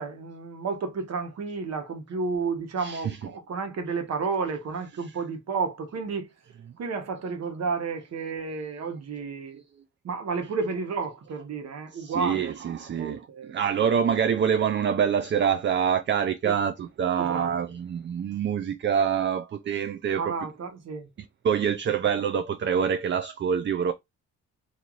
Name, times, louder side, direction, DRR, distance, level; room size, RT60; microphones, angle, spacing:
voice 1, 0.0-6.3 6.8-9.6 10.0-12.5 13.0-13.6 16.4-16.5 17.2-17.5 20.2-21.1, right 4 dB, 60° right, 1.3 m, -31 dB
voice 2, 2.8-3.2 5.0-5.2 9.5-9.6 11.9-20.4 21.4-23.9, right 7 dB, 40° right, 0.5 m, -26 dB
3.1 x 2.7 x 3.9 m
cardioid pair, 90°, 30 cm